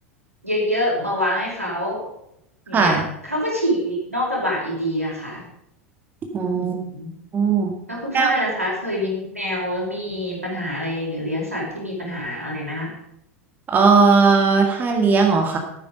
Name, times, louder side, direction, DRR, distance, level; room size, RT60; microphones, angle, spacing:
voice 1, 0.4-2.0 2.7-3.0 3.2-5.4 6.5-7.1 7.9-12.9, equal, 90° right, -3 dB, 5.2 m, -26 dB
voice 2, 2.7-3.1 6.3-6.7 7.3-7.7 8.1-8.4 13.7-15.6, right 4 dB, 25° right, 3 dB, 2.3 m, -17 dB
13.0 x 9.8 x 5.3 m, 0.79 s
figure-of-eight pair, 85°, 7 cm